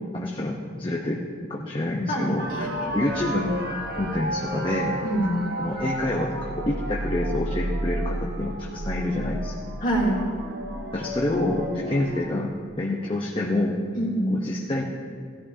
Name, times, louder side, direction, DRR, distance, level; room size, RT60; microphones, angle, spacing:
voice 1, 0.1-1.2 1.5-2.7 2.9-3.5 4.0-5.0 5.6-9.5 10.9-12.5 12.8-13.8 14.3-14.8, left 2 dB, 25° left, -2 dB, 0.8 m, -27 dB
voice 2, 2.1-2.9 5.0-5.5 9.8-10.2 13.9-14.4, equal, 40° left, -5 dB, 2.1 m, -25 dB
sound 1, 2.4-12.2, right 1 dB, 50° right, 1.2 m, -32 dB
17.5 x 14.0 x 2.8 m, 2.2 s
head